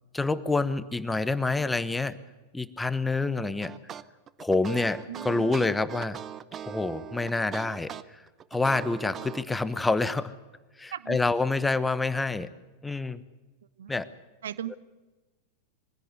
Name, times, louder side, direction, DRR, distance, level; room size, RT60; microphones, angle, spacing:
voice 1, 0.1-2.2 2.5-3.7 4.4-6.2 6.7-8.2 8.5-10.3 10.8-12.5 12.8-13.2 13.9-14.1, left 3 dB, 10° left, 14 dB, 1.0 m, -27 dB
sound 1, 3.6-9.4, right 9 dB, 25° right, 0.8 m, -41 dB
voice 2, 5.1-5.5 10.9-11.2 13.8-14.1 14.4-14.7, right 10 dB, 65° right, 18 dB, 0.8 m, -37 dB
23.5 x 16.0 x 8.2 m, 1.2 s
figure-of-eight pair, 90°, 0 cm